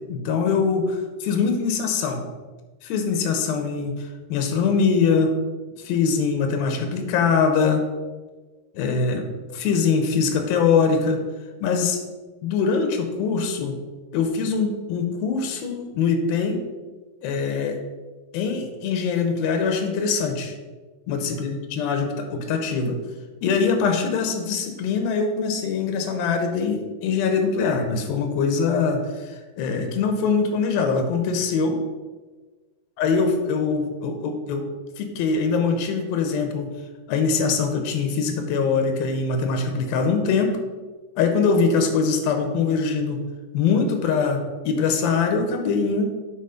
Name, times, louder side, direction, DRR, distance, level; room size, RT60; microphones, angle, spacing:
voice 1, 0.1-2.3 2.8-5.3 5.8-7.8 8.7-9.3 9.5-11.2 11.6-12.0 12.4-13.8 14.1-16.6 17.2-17.8 18.3-20.5 21.1-23.0 23.4-31.8 33.0-34.6 35.0-36.7 37.1-40.6 41.2-43.2 43.5-46.1, left 5 dB, 90° left, 5 dB, 2.8 m, -23 dB
8.2 x 4.2 x 5.1 m, 1.3 s
omnidirectional pair, 4.1 m